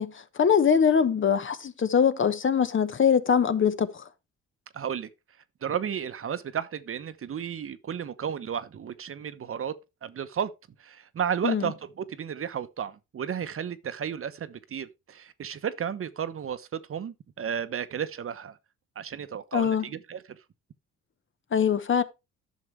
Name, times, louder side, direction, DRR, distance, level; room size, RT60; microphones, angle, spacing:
voice 1, 0.0-4.0 11.4-11.7 19.5-19.8 21.5-22.0, left 7 dB, 40° left, 1.1 m, -23 dB
voice 2, 4.7-5.1 5.6-9.7 10.0-10.5 10.8-18.6 19.0-20.2, right 8 dB, 45° right, 1.0 m, -33 dB
11.0 x 6.5 x 3.3 m
cardioid pair, 90°, 30 cm